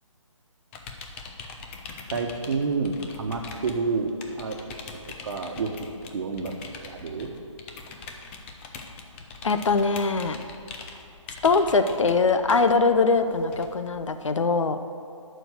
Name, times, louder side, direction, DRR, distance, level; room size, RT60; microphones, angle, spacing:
sound 1, 0.7-14.4, left 4 dB, 20° left, 0.7 m, -43 dB
voice 1, 2.1-4.1 4.4-4.6 5.2-5.7 6.1-6.5 6.8-7.3, right 4 dB, 50° right, 4 dB, 1.2 m, -28 dB
voice 2, 9.4-10.4 11.4-14.8, left 4 dB, 65° left, 9 dB, 0.7 m, -22 dB
11.5 x 4.5 x 8.0 m, 2.4 s
figure-of-eight pair, 145°, 17 cm